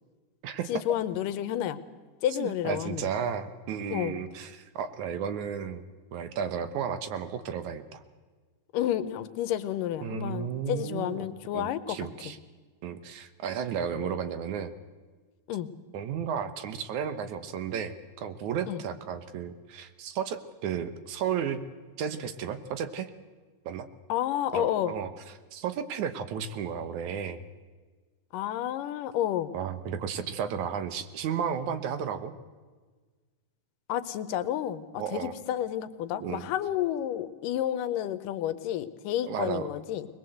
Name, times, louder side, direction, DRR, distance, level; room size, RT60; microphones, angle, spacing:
voice 1, 0.7-1.8 2.2-3.1 3.9-4.2 8.7-12.0 12.3-12.4 15.5-15.7 18.7-18.8 24.1-24.9 28.3-29.5 33.9-40.1, left 11 dB, 85° left, 13 dB, 2.5 m, -30 dB
voice 2, 2.3-5.8 6.1-8.0 10.0-11.3 11.5-12.4 12.8-14.7 15.9-21.6 22.0-23.1 23.7-23.9 24.5-25.1 25.5-27.4 29.5-32.3 35.0-35.3 36.2-36.4 39.2-39.7, right 7 dB, 70° right, 10 dB, 2.3 m, -33 dB
21.0 x 21.0 x 7.9 m, 1.4 s
omnidirectional pair, 3.7 m